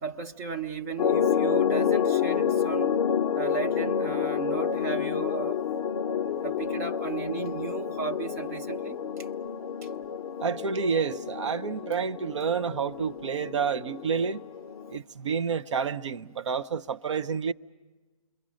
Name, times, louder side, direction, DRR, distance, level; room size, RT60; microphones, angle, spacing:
voice 1, 0.0-3.0 3.3-5.6 6.4-9.3 9.8-9.9, right 6 dB, 25° right, 1.0 m, -35 dB
sound 1, 1.0-15.0, left 8 dB, 15° left, 0.8 m, -29 dB
voice 2, 10.4-14.4 14.9-17.5, right 6 dB, 55° right, 0.8 m, -29 dB
28.0 x 23.0 x 6.3 m
hypercardioid pair, 155°, 18 cm